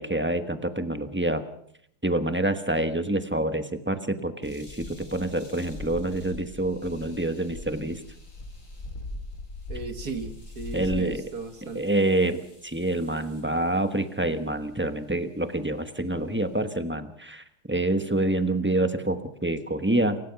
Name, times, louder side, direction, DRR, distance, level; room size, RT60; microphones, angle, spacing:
voice 1, 0.0-1.4 2.0-8.0 10.7-11.3 11.6-20.2, right 1 dB, 10° right, 9 dB, 0.7 m, -27 dB
sound 1, 4.4-13.6 14.4-14.8 15.4-15.5 16.0-16.7, left 2 dB, 35° left, 4.7 m, -42 dB
voice 2, 9.7-11.9, right 3 dB, 45° right, 8 dB, 2.0 m, -36 dB
28.5 x 16.0 x 5.9 m, 0.69 s
omnidirectional pair, 2.4 m